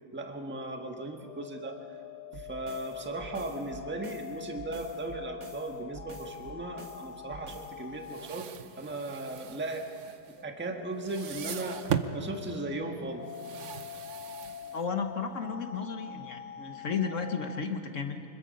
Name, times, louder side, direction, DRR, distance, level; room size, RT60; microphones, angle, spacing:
voice 1, 0.1-1.8 2.3-8.5 8.7-10.1 10.4-11.8 12.1-13.2, right 2 dB, 5° right, 3 dB, 1.1 m, -37 dB
sound 1, 1.0-8.3 10.4-17.7, left 10 dB, 70° left, 1.2 m, -45 dB
sound 2, 2.3-7.8, right 3 dB, 40° right, 1.8 m, -49 dB
sound 3, 7.9-10.7 11.0-12.2 13.2-15.1, right 8 dB, 60° right, 0.7 m, -38 dB
voice 2, 14.7-18.2, left 5 dB, 45° left, 6 dB, 1.2 m, -33 dB
25.0 x 22.0 x 5.3 m, 2.6 s
omnidirectional pair, 2.1 m